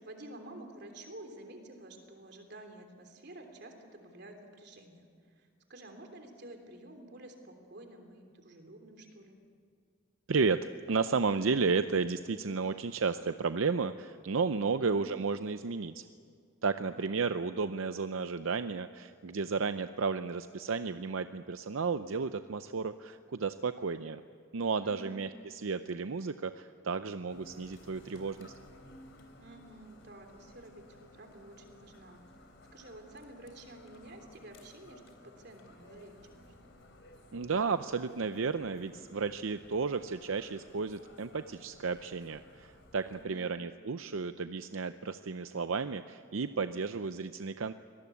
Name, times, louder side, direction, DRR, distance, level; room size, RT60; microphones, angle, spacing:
voice 1, 0.0-5.0 5.3-9.3 14.7-15.0 16.9-17.1 24.8-25.2 29.4-32.2 32.7-36.5 43.2-43.5, right 1 dB, 55° right, 4 dB, 3.3 m, -50 dB
voice 2, 10.3-16.1 16.6-24.2 24.5-28.5 37.3-47.7, right 4 dB, 85° right, 11 dB, 0.6 m, -33 dB
sound 1, 27.3-43.2, left 1 dB, 70° left, 3.4 m, -56 dB
24.5 x 19.0 x 8.5 m, 2.1 s
head